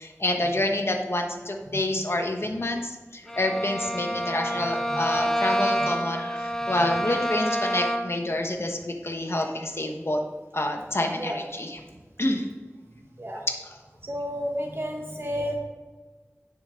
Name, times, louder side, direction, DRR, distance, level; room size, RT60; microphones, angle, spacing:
voice 1, 0.0-10.2 10.5-11.8 12.2-12.5, left 1 dB, 55° left, 3 dB, 1.2 m, -28 dB
Bowed string instrument, 3.3-8.3, equal, 10° left, 0.8 m, -27 dB
voice 2, 14.0-15.6, equal, 50° right, 1 dB, 1.1 m, -31 dB
10.5 x 6.3 x 3.8 m, 1.3 s
wide cardioid pair, 50°, 5 cm